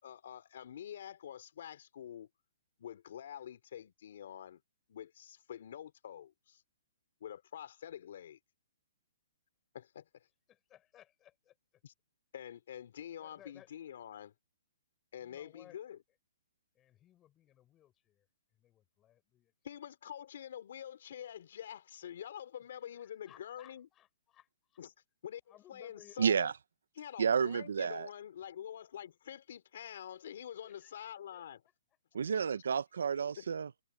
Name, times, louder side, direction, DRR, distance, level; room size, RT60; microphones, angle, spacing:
voice 1, 0.0-2.3 2.8-4.6 4.9-6.6 7.2-8.4 9.7-10.3 11.8-11.9 12.3-14.3 15.1-16.0 19.6-23.9 24.8-24.9 25.2-25.4 25.7-26.5 26.9-31.6 33.4-33.5, left 10 dB, 60° left, 3.1 m, -46 dB
voice 2, 10.5-11.8 13.2-13.7 15.2-15.8 16.7-18.3 18.5-19.5 22.9-24.8 25.5-26.2 27.5-27.7 30.6-31.1 31.3-31.4, left 12 dB, 20° left, 4.8 m, -61 dB
voice 3, 26.2-26.5 27.2-28.1 32.1-33.7, right 6 dB, 80° right, 0.9 m, -31 dB
hypercardioid pair, 155°, 0 cm